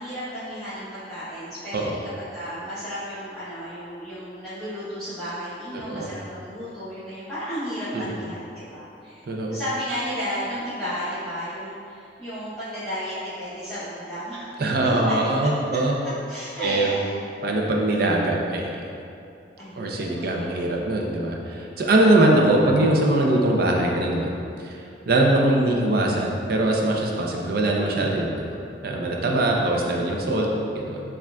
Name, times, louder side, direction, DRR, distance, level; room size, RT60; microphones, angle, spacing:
voice 1, 0.0-9.1 9.5-14.6 14.8-15.5 16.3-17.2 19.6-20.5 21.9-22.4 30.5-30.8, equal, ahead, -17 dB, 0.9 m, -33 dB
voice 2, 9.3-9.6 14.6-15.9 16.6-16.9 17.4-18.7 19.7-24.3 24.6-24.8 25.1-28.5 28.8-30.5 30.7-31.0, right 1 dB, 60° right, 0 dB, 0.5 m, -22 dB
7.1 x 2.4 x 2.3 m, 2.6 s
head